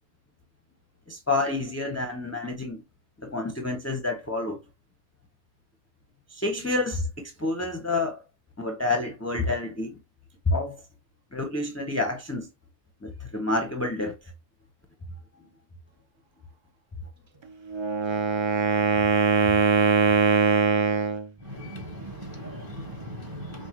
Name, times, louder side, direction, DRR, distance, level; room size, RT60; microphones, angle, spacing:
voice 1, 1.1-2.8 3.2-4.6 6.3-8.2 8.6-9.9 10.5-10.8 11.3-12.5 13.0-14.1, left 2 dB, 15° left, 0.6 m, -28 dB
Wind instrument woodwind instrument, 17.7-21.3, right 5 dB, 50° right, 0.3 m, -22 dB
voice 2, 21.4-23.7, equal, 20° right, 0.8 m, -38 dB
5.8 x 2.5 x 3.1 m
omnidirectional pair, 1.1 m